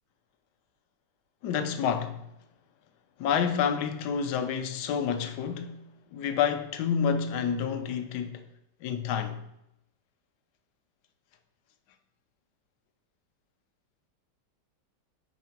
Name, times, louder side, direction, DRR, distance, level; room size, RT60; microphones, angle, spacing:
voice 1, 1.4-2.2 3.2-5.8 6.1-8.4 8.8-9.4, left 7 dB, 70° left, 1.1 m, -29 dB
4.9 x 4.1 x 5.6 m
omnidirectional pair, 2.0 m